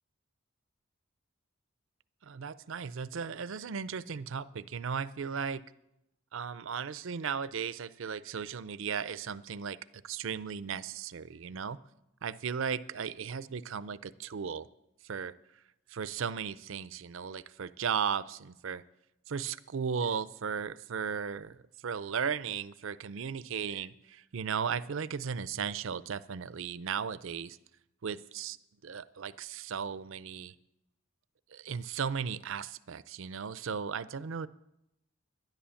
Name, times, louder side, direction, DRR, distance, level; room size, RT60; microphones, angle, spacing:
voice 1, 2.2-5.6 6.3-9.8 10.0-11.8 12.2-14.7 15.0-15.6 15.9-18.8 19.3-27.6 28.0-28.6 28.8-30.5 31.5-34.5, right 6 dB, 65° right, 17 dB, 0.5 m, -36 dB
11.5 x 10.5 x 7.1 m, 0.85 s
head